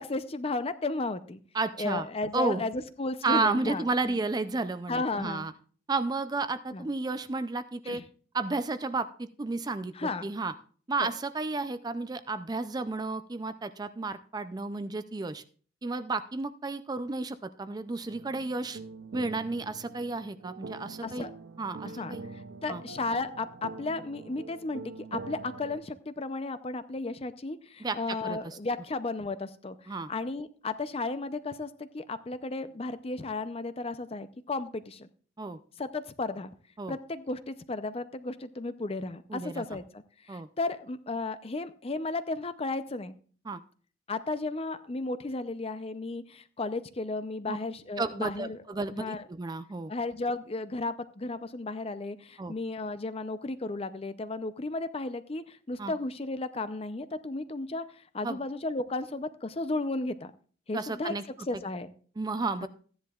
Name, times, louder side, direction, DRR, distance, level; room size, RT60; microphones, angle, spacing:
voice 1, 0.0-1.4 1.8-4.2 4.9-5.5 6.7-6.9 7.8-8.1 9.9-10.3 11.0-11.1 21.0-21.3 21.8-35.1 35.8-36.5 36.9-43.1 44.1-48.6 48.9-49.2 49.9-60.3 60.7-61.9 62.6-62.7, left 3 dB, 30° left, 12 dB, 0.5 m, -34 dB
voice 2, 1.5-2.1 2.3-2.6 3.2-5.5 5.9-8.0 8.3-10.5 10.9-15.4 15.8-18.8 19.1-21.3 21.6-22.2 22.7-22.8 27.8-28.6 29.9-30.1 35.4-35.6 36.8-37.0 39.3-39.6 40.3-40.5 43.5-43.6 47.5-47.6 48.0-49.9 52.4-52.5 55.8-55.9 58.2-58.4 60.7-61.2 62.2-62.7, right 3 dB, 20° right, 12 dB, 0.4 m, -32 dB
sound 1, 18.1-25.8, right 3 dB, 75° right, 0.6 m, -44 dB
15.0 x 10.5 x 2.4 m, 0.43 s
head